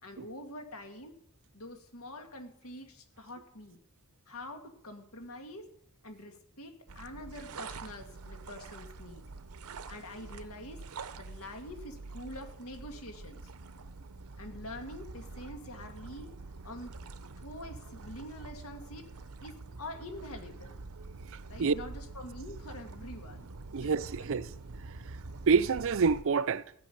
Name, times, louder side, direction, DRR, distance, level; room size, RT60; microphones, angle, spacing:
voice 1, 0.0-1.1 1.5-3.8 4.3-5.7 6.0-9.4 9.9-10.8 11.1-13.4 14.4-16.3 16.6-16.9 17.4-19.1 19.4-20.8 21.5-23.5 23.8-23.9 24.2-24.3, left 1 dB, 75° left, 2.0 m, -45 dB
sound 1, 6.9-26.2, right 3 dB, 85° right, 0.8 m, -46 dB
voice 2, 23.7-24.5 25.5-26.6, right 5 dB, 65° right, 0.5 m, -26 dB
16.0 x 6.4 x 10.0 m
head